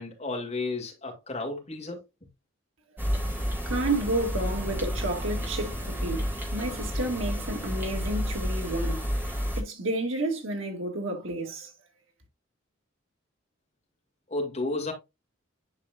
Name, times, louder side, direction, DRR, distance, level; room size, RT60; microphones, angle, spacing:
voice 1, 0.0-2.0 14.3-14.9, left 2 dB, 35° left, 2.6 m, -32 dB
sound 1, 3.0-9.6, equal, 10° right, 2.1 m, -30 dB
voice 2, 3.7-9.1 9.6-11.7, right 1 dB, 80° right, 2.4 m, -31 dB
10.5 x 4.8 x 2.4 m
head